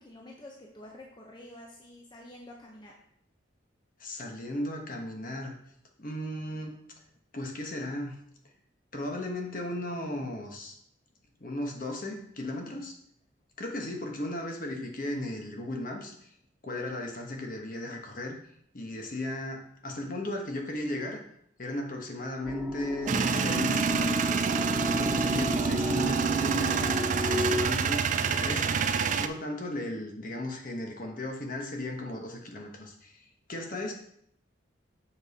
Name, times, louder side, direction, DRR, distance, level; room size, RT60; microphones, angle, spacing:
voice 1, 0.0-2.9, left 1 dB, 25° left, -1 dB, 0.8 m, -48 dB
voice 2, 4.0-5.5 6.0-6.8 7.3-8.2 8.9-10.8 11.4-12.9 13.6-16.3 16.6-18.4 18.7-21.2 21.6-24.4 24.8-26.8 27.1-28.7 29.2-33.9, left 1 dB, 45° left, 2 dB, 1.2 m, -36 dB
sound 1, 22.4-27.6, left 2 dB, 5° right, 1.0 m, -33 dB
Male speech man speaking / Vehicle / Engine starting, 23.1-29.3, right 6 dB, 40° right, 0.3 m, -27 dB
7.2 x 5.2 x 4.2 m, 0.70 s
head